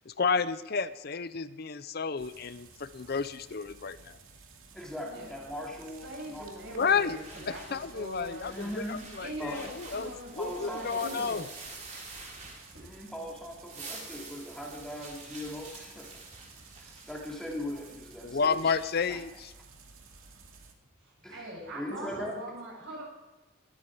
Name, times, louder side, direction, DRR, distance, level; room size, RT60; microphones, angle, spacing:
voice 1, 0.1-4.2 6.7-7.2 7.5-11.4 18.2-19.5, left 5 dB, 45° left, 13 dB, 0.5 m, -31 dB
sound 1, 2.2-20.7, right 4 dB, 80° right, 2.4 m, -54 dB
voice 2, 4.7-6.4 8.5-9.0 9.4-9.6 10.0-11.2 12.8-16.2 16.8-18.8 19.1-19.2 21.2-22.4, equal, 5° left, -2 dB, 2.7 m, -40 dB
voice 3, 6.0-8.6 9.2-11.5 12.6-13.0 16.5-16.6 21.0-23.0, right 1 dB, 55° right, -2 dB, 7.4 m, -42 dB
sound 2, 6.7-13.1 13.5-18.1, right 3 dB, 35° right, 3.8 m, -48 dB
22.0 x 13.5 x 4.9 m, 1.0 s
head